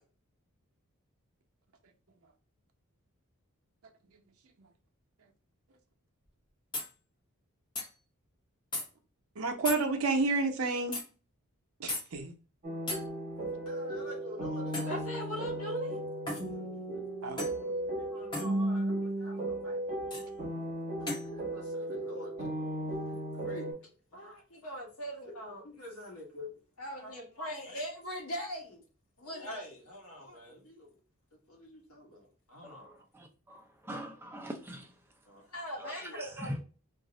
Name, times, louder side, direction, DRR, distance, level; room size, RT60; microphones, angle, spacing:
sound 1, 6.2-6.3 6.7-6.9 7.7-7.9 8.7-8.8 9.6-9.8 10.9-11.0 11.9-12.0 12.9-13.0 14.7-15.0 16.3-16.5 17.4-17.6 18.3-18.5 20.1-20.3 21.1-21.3, left 2 dB, 20° left, 0.8 m, -35 dB
voice 1, 9.4-11.0 11.8-12.3 17.2-17.4, right 3 dB, 70° right, 0.6 m, -30 dB
sound 2, 12.6-23.7, right 1 dB, 35° right, 0.9 m, -35 dB
voice 2, 13.7-16.0 16.3-17.1 17.4-19.8 21.0-22.5 23.1-26.5 26.8-28.8 29.2-30.9 31.5-33.1 35.3-36.6, equal, 80° left, 1.0 m, -43 dB
voice 3, 33.1-34.9 35.8-35.9 36.5-36.6, equal, 10° right, 0.4 m, -42 dB
2.5 x 2.0 x 3.7 m
head